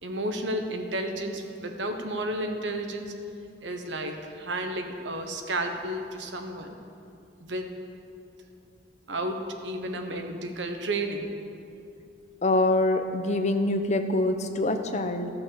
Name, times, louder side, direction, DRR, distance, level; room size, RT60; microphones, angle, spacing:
voice 1, 0.0-3.1 3.6-6.8 7.4-7.8 9.1-11.3, right 1 dB, 75° right, 5 dB, 1.1 m, -32 dB
voice 2, 12.4-15.3, left 2 dB, 40° left, 7 dB, 0.7 m, -25 dB
14.5 x 5.9 x 7.0 m, 2.7 s
head